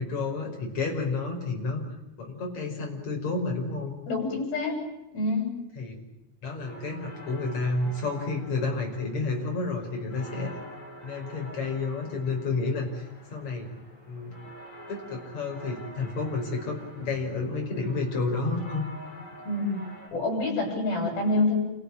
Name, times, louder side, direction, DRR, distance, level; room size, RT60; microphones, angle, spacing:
voice 1, 0.0-3.9 5.7-6.0 6.4-10.6 11.0-13.7 14.1-14.4 14.9-18.9 19.2-19.3, left 3 dB, 50° left, 1 dB, 6.7 m, -30 dB
voice 2, 4.1-4.8 5.1-5.5 19.5-19.8 20.1-21.6, left 2 dB, 70° left, 4 dB, 9.3 m, -26 dB
sound 1, 6.7-20.1, equal, 20° left, 8.3 m, -47 dB
29.5 x 16.0 x 8.8 m, 0.95 s
omnidirectional pair, 4.3 m